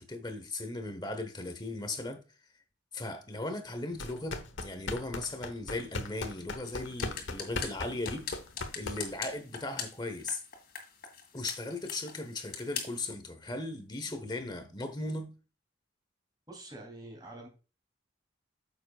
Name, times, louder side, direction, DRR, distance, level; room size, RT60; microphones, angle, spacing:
voice 1, 0.0-2.2 2.9-8.3 8.7-10.4 11.3-15.3, left 2 dB, 20° left, 1.0 m, -37 dB
sound 1, 3.9-9.3, left 3 dB, 80° left, 1.1 m, -38 dB
sound 2, 6.6-13.1, left 7 dB, 50° left, 2.1 m, -43 dB
voice 2, 16.5-17.5, right 1 dB, 20° right, 3.1 m, -46 dB
9.1 x 7.1 x 2.4 m
head